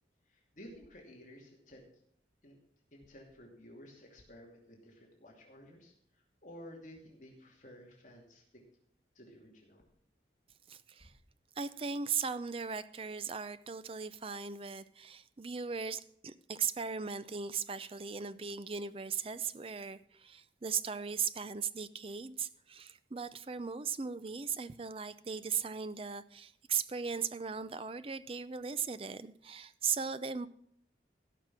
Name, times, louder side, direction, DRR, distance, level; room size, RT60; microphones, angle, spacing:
voice 1, 0.3-1.9 2.4-2.6 2.9-5.9 6.4-8.6 9.1-9.8, equal, 45° left, -1 dB, 2.7 m, -53 dB
voice 2, 10.7-11.1 11.6-30.5, right 6 dB, 30° right, 14 dB, 0.5 m, -38 dB
16.0 x 6.0 x 6.0 m, 0.69 s
head